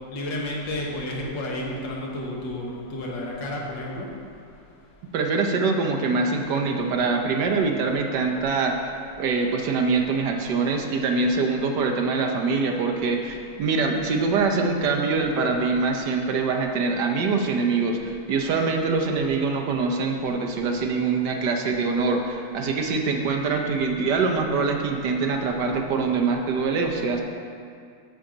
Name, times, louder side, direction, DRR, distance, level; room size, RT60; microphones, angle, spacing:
voice 1, 0.1-4.1, left 1 dB, 75° left, -3 dB, 1.9 m, -31 dB
voice 2, 5.1-8.9 9.2-27.2, right 4 dB, 70° right, 2 dB, 1.3 m, -24 dB
8.9 x 7.2 x 3.8 m, 2.3 s
omnidirectional pair, 2.0 m